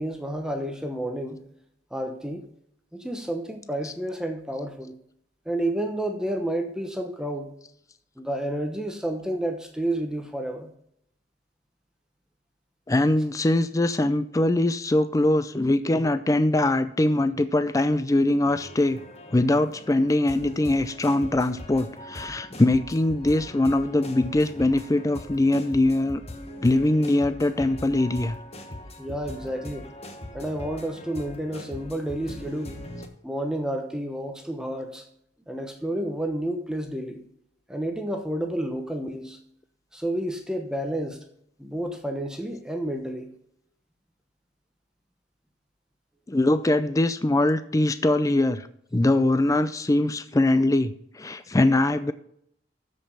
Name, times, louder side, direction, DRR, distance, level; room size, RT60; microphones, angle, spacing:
voice 1, 0.0-1.4 1.9-2.5 2.9-4.9 5.5-7.5 8.2-10.7 29.0-29.9 30.3-32.8 33.2-35.1 35.5-37.2 37.7-39.4 39.9-41.2 41.6-43.3, right 1 dB, 5° right, 4 dB, 1.0 m, -30 dB
voice 2, 12.9-19.0 19.3-26.2 26.6-28.4 46.3-48.7 48.9-52.1, left 1 dB, 15° left, 12 dB, 0.4 m, -22 dB
sound 1, 18.4-33.1, left 1 dB, 35° left, 1.3 m, -41 dB
13.5 x 5.4 x 5.6 m, 0.70 s
head